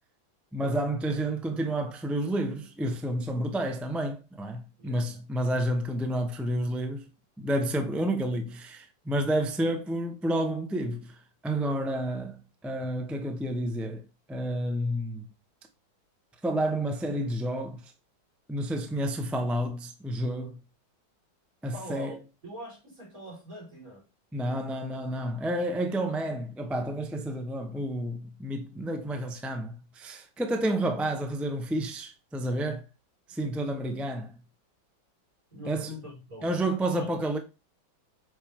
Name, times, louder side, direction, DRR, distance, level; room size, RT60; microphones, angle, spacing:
voice 1, 0.5-7.1 7.4-11.2 11.4-12.4 12.6-14.0 14.3-15.2 16.4-17.9 18.5-20.6 21.6-22.2 24.3-32.8 33.3-34.3 35.7-35.9 36.4-37.4, right 1 dB, ahead, 0.3 m, -30 dB
voice 2, 4.8-5.2 21.7-24.0 35.5-37.1, left 1 dB, 40° right, 5.0 m, -44 dB
8.1 x 5.2 x 3.6 m
omnidirectional pair, 2.2 m